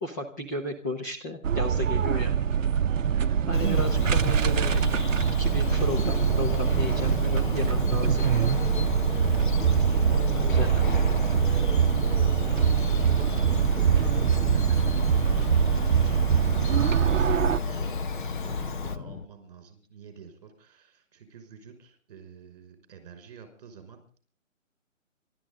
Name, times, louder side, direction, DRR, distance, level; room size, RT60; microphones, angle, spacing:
voice 1, 0.0-2.4 3.5-4.8 5.4-8.3 10.1-10.8, left 1 dB, 15° left, 0 dB, 1.0 m, -34 dB
sound 1, 1.4-17.6, right 8 dB, 70° right, 0.7 m, -24 dB
voice 2, 3.0-3.8 9.4-10.3 11.5-24.0, right 7 dB, 30° right, 7 dB, 5.7 m, -49 dB
Bird vocalization bird call bird song, 3.5-19.0, left 4 dB, 40° left, 1.2 m, -33 dB
sound 2, 5.6-19.3, left 6 dB, 75° left, 1.0 m, -39 dB
27.5 x 13.0 x 3.8 m, 0.40 s
hypercardioid pair, 165°, 39 cm